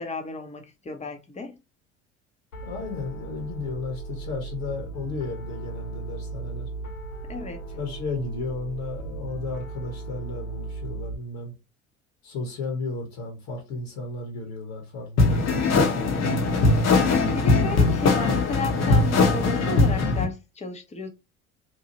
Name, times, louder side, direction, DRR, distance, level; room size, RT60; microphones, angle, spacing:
voice 1, 0.0-1.6 7.3-7.7 17.3-21.1, left 3 dB, 15° left, 0.8 m, -33 dB
Piano, 2.5-11.2, right 3 dB, 75° left, 1.4 m, -37 dB
voice 2, 2.6-6.7 7.7-11.5 12.2-17.0, left 3 dB, 60° left, 1.2 m, -34 dB
sound 1, 15.2-20.3, left 3 dB, 45° left, 0.9 m, -20 dB
2.8 x 2.4 x 2.8 m
hypercardioid pair, 65°, 39 cm